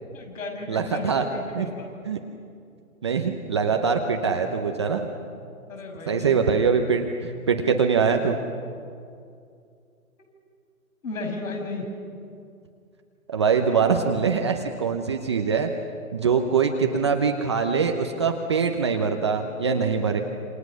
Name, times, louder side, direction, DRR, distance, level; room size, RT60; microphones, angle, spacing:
voice 1, 0.1-1.9 5.7-6.4 11.0-11.9, left 3 dB, 60° left, 2 dB, 6.4 m, -34 dB
voice 2, 0.7-1.3 1.5-1.7 2.1-2.2 3.0-5.2 6.1-8.4 13.3-15.7 16.1-20.2, right 5 dB, 20° right, 4 dB, 0.7 m, -23 dB
27.5 x 26.5 x 6.3 m, 2.4 s
hypercardioid pair, 155°, 45 cm